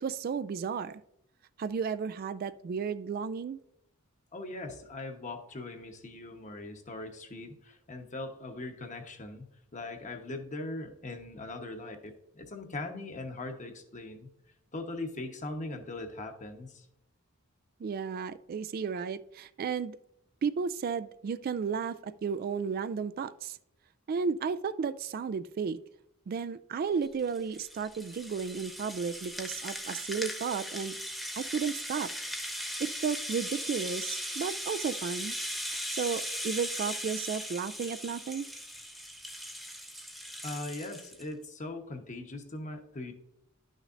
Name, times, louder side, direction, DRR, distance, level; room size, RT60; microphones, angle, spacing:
voice 1, 0.0-1.0 1.6-3.6 17.8-20.0 20.4-23.6 24.1-25.8 26.3-31.0 31.4-32.1 32.8-35.4 35.7-38.5, right 6 dB, 45° right, 13 dB, 0.3 m, -33 dB
voice 2, 4.3-14.3 14.7-16.9 40.4-43.1, left 2 dB, 35° left, 5 dB, 1.1 m, -40 dB
Rattle (instrument), 27.0-41.2, equal, ahead, 1.0 m, -38 dB
11.5 x 6.4 x 2.5 m, 0.77 s
head